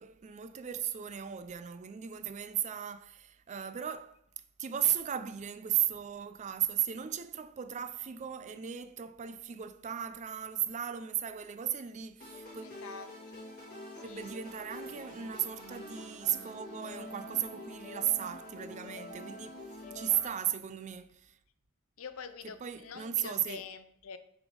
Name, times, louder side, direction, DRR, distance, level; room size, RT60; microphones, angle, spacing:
voice 1, 0.0-4.2 4.6-12.7 14.0-19.6 19.9-21.3 22.4-23.6, right 10 dB, 35° right, 0.4 m, -35 dB
sound 1, 12.2-20.2, left 1 dB, 45° left, 2.7 m, -46 dB
voice 2, 12.6-13.4 13.9-14.3 19.8-20.3 22.0-24.2, left 6 dB, 70° left, 0.6 m, -46 dB
6.9 x 3.5 x 5.0 m
head